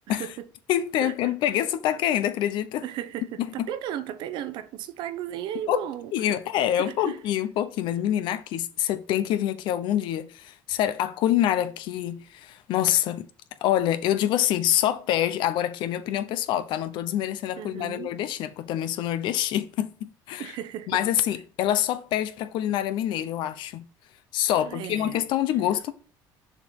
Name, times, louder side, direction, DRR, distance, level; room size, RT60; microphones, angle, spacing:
voice 1, 0.1-0.5 1.0-1.1 2.8-6.4 6.8-7.2 17.6-18.1 20.4-21.0 24.6-25.2, right 11 dB, 70° right, 0.8 m, -35 dB
voice 2, 0.7-2.8 3.6-3.7 5.7-5.8 6.1-13.3 13.6-20.5 20.9-23.8 24.3-25.9, left 11 dB, 70° left, 0.8 m, -26 dB
6.8 x 4.4 x 4.4 m
cardioid pair, 115°, 8 cm